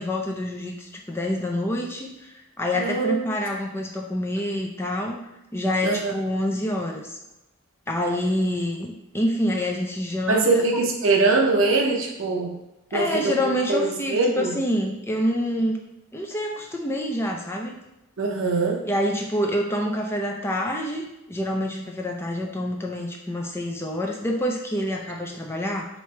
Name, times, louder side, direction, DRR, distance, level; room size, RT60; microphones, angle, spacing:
voice 1, 0.0-5.2 5.5-7.2 7.9-10.6 12.9-15.8 16.1-17.8 18.8-25.9, left 1 dB, 10° left, 0 dB, 0.4 m, -27 dB
voice 2, 2.7-3.3 5.8-6.1 10.3-12.5 12.9-13.3 13.7-14.5 18.2-18.8, right 3 dB, 70° right, 1 dB, 0.7 m, -22 dB
3.2 x 2.9 x 4.3 m, 0.93 s
head